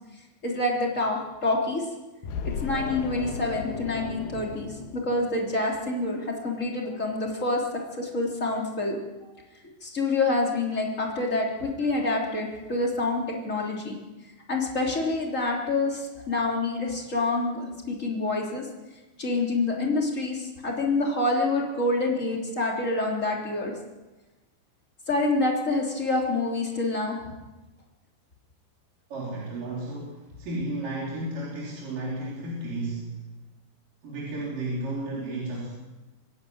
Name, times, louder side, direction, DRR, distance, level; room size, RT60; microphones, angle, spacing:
voice 1, 0.4-1.9 2.4-9.3 9.6-14.0 14.5-18.7 19.2-23.7 25.1-27.3, left 2 dB, 20° left, -1 dB, 3.0 m, -27 dB
sound 1, 2.2-5.7, left 6 dB, 70° left, 2.8 m, -35 dB
voice 2, 29.1-33.3 34.0-35.7, right 2 dB, 50° right, -5 dB, 5.1 m, -33 dB
25.0 x 11.0 x 9.5 m, 1.1 s
omnidirectional pair, 5.3 m